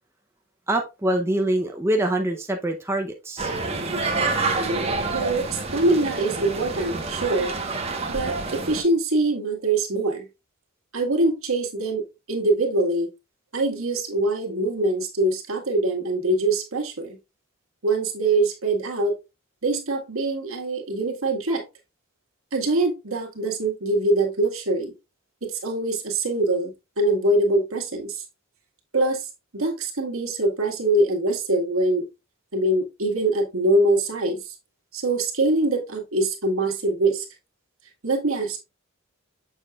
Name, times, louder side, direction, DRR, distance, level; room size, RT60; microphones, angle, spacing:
voice 1, 0.7-3.5, right 1 dB, 10° right, 0.7 m, -24 dB
sound 1, 3.4-8.8, right 3 dB, 30° right, 1.2 m, -27 dB
voice 2, 5.1-7.5 8.1-10.3 10.9-12.0 12.3-13.1 13.5-17.2 17.8-19.1 19.6-21.6 22.5-24.9 25.4-28.2 28.9-29.3 29.5-32.0 32.5-34.5 34.9-37.2 38.0-38.6, right 2 dB, 80° right, 1.9 m, -23 dB
7.3 x 6.5 x 2.4 m
head